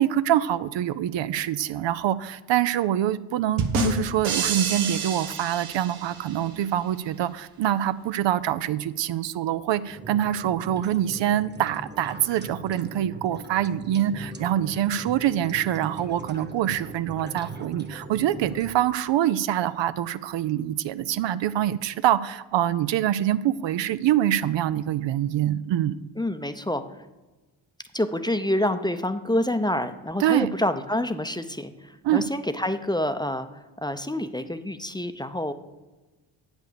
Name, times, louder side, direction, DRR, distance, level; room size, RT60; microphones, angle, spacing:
voice 1, 0.0-26.0 30.2-30.5 32.0-32.3, right 11 dB, 60° right, 14 dB, 0.6 m, -25 dB
sound 1, 3.6-6.4, right 3 dB, 85° right, 1.2 m, -28 dB
sound 2, 9.8-18.8, right 2 dB, 20° right, 1.3 m, -41 dB
voice 2, 26.2-26.8 27.9-33.5 33.8-35.5, left 1 dB, 10° left, 10 dB, 0.7 m, -27 dB
8.1 x 6.2 x 6.8 m, 1.2 s
supercardioid pair, 50°, 49 cm